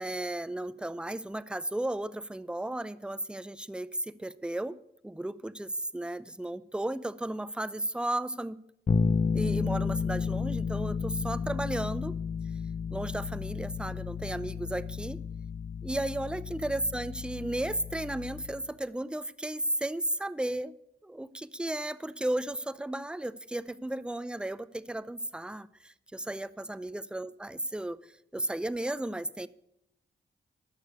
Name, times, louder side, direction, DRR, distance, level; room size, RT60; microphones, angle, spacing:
voice 1, 0.0-4.8 5.0-8.6 9.3-12.2 12.9-15.2 15.8-20.7 21.0-28.0 28.3-29.5, right 1 dB, 5° right, 16 dB, 0.5 m, -34 dB
Bass guitar, 8.9-18.7, left 5 dB, 35° left, 0.6 m, -32 dB
11.5 x 6.5 x 6.7 m, 0.80 s
supercardioid pair, 45°, 21 cm